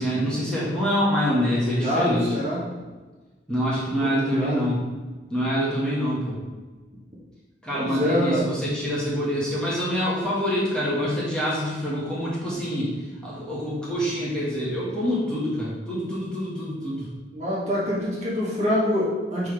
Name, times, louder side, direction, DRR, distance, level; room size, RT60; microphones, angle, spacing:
voice 1, 0.0-2.3 3.5-4.8 5.3-6.4 7.6-13.0 13.2-17.1, equal, 5° left, -8 dB, 1.7 m, -26 dB
voice 2, 1.7-2.9 3.9-4.6 7.7-8.4 17.3-19.5, left 1 dB, 40° right, -7 dB, 2.1 m, -25 dB
10.0 x 3.8 x 3.4 m, 1.3 s
head